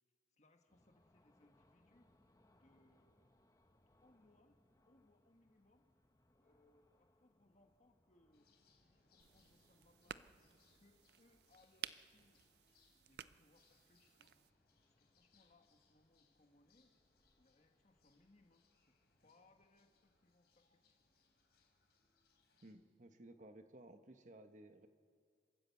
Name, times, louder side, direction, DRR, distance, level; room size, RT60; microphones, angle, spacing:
voice 1, 0.3-2.1 2.5-4.6 4.8-5.9 6.4-8.5 8.8-12.4 13.1-14.4 14.8-16.9 17.4-19.0 19.2-21.1 24.2-24.3, left 2 dB, 40° left, 4 dB, 1.4 m, -73 dB
sound 1, 0.7-20.3, left 1 dB, 20° left, 1.0 m, -77 dB
sound 2, 8.3-22.7, left 4 dB, 65° left, 3.6 m, -77 dB
sound 3, 9.2-14.5, right 9 dB, 70° right, 0.5 m, -55 dB
voice 2, 22.6-24.9, right 1 dB, 45° right, 8 dB, 1.0 m, -58 dB
27.5 x 13.0 x 8.2 m, 2.1 s
head